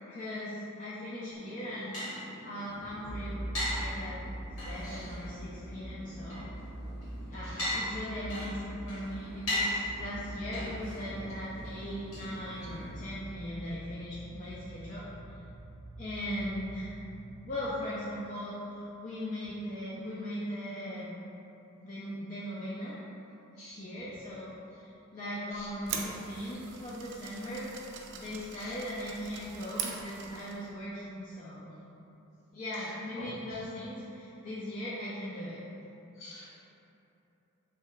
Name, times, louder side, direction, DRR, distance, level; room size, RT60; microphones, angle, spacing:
voice 1, 0.1-3.4 3.7-4.2 4.6-6.5 7.3-15.1 16.0-16.9 17.4-21.2 21.8-22.9 23.6-27.7 28.1-31.7 32.5-35.6, equal, 35° left, -9 dB, 0.4 m, -39 dB
sound 1, 1.3-13.0, left 1 dB, 80° left, 1.3 m, -39 dB
sound 2, 3.1-17.5, right 1 dB, 15° right, 0.9 m, -44 dB
voice 2, 4.8-5.2 7.1-7.7 23.6-23.8 25.5-25.7 28.5-28.7 32.8-33.6 36.1-36.5, left 1 dB, 65° left, -7 dB, 1.0 m, -50 dB
sound 3, 25.5-30.7, right 6 dB, 60° right, 0.3 m, -42 dB
3.1 x 2.3 x 3.7 m, 2.9 s
head